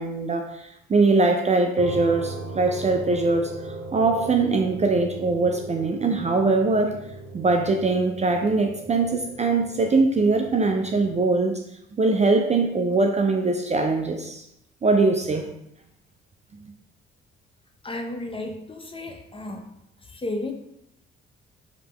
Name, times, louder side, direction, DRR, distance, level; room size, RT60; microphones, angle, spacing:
voice 1, 0.0-7.0 7.3-11.6 12.0-14.4 14.8-15.5, right 3 dB, 25° right, 4 dB, 0.5 m, -22 dB
sound 1, 1.8-11.3, right 2 dB, 45° right, 1.0 m, -39 dB
voice 2, 17.8-19.7 20.1-20.5, left 2 dB, 20° left, 4 dB, 0.7 m, -33 dB
5.0 x 2.9 x 3.3 m, 0.78 s
hypercardioid pair, 45°, 30 cm